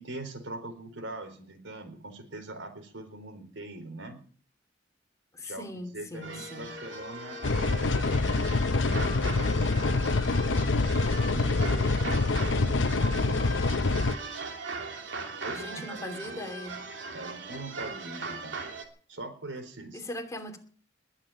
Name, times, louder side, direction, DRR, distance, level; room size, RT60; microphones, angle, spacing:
voice 1, 0.0-4.2 5.4-10.3 10.9-14.2 15.4-16.4 17.1-18.6 19.1-20.0, right 2 dB, 90° right, 4.3 m, -43 dB
voice 2, 5.3-6.7 15.5-16.8 19.9-20.6, left 1 dB, 15° left, 2.8 m, -40 dB
Wind instrument woodwind instrument, 6.1-12.2, left 5 dB, 10° right, 4.7 m, -47 dB
sound 1, 6.2-18.8, right 4 dB, 75° right, 3.1 m, -40 dB
sound 2, 7.4-14.2, left 3 dB, 80° left, 0.8 m, -26 dB
21.0 x 7.4 x 9.0 m
head